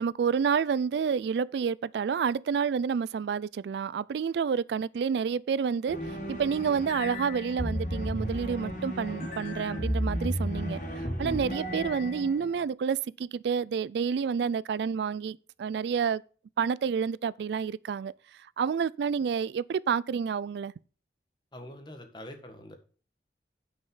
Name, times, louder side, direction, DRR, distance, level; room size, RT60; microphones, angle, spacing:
voice 1, 0.0-16.2 16.6-18.1 18.6-20.7, right 6 dB, 75° right, 0.3 m, -29 dB
sound 1, 5.9-12.6, equal, 45° left, 2.6 m, -33 dB
voice 2, 21.5-22.8, left 1 dB, 25° left, 1.7 m, -44 dB
9.5 x 5.5 x 5.6 m
head